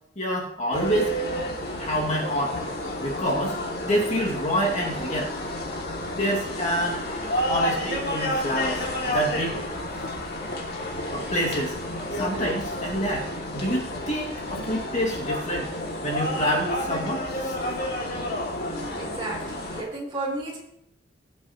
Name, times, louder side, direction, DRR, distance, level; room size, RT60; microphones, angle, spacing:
voice 1, 0.2-1.1 1.8-2.6 3.0-3.6 3.8-5.3 6.1-7.0 7.3-9.6 11.1-11.8 12.2-15.7 16.0-17.5, equal, 40° left, -3 dB, 2.5 m, -27 dB
sound 1, 0.7-19.8, left 1 dB, 55° left, 2.7 m, -30 dB
voice 2, 18.7-20.6, right 2 dB, 30° right, -3 dB, 4.0 m, -33 dB
22.0 x 8.3 x 3.2 m, 0.76 s
head